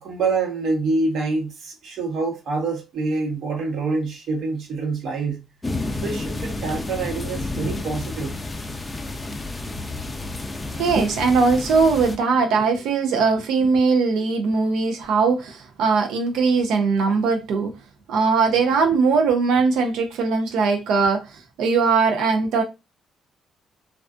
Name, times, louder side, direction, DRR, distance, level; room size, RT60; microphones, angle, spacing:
voice 1, 0.0-5.4 6.0-8.4, right 3 dB, 70° right, 0.9 m, -26 dB
sound 1, 5.6-12.2, left 2 dB, 20° left, 0.4 m, -30 dB
voice 2, 10.8-17.7 18.1-22.6, right 4 dB, 85° right, 0.4 m, -20 dB
2.4 x 2.3 x 2.3 m
cardioid pair, 90°, 0 cm